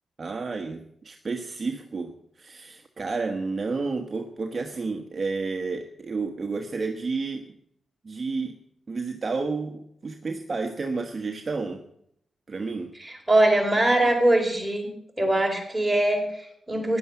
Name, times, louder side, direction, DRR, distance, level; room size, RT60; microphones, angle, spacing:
voice 1, 0.2-7.5 8.0-8.6 8.9-11.8 12.5-12.9, right 4 dB, 35° right, 4 dB, 1.3 m, -31 dB
voice 2, 13.0-14.9 15.2-17.0, right 1 dB, 5° right, 0 dB, 4.7 m, -22 dB
16.0 x 11.0 x 7.0 m, 0.72 s
wide cardioid pair, 130°, 0 cm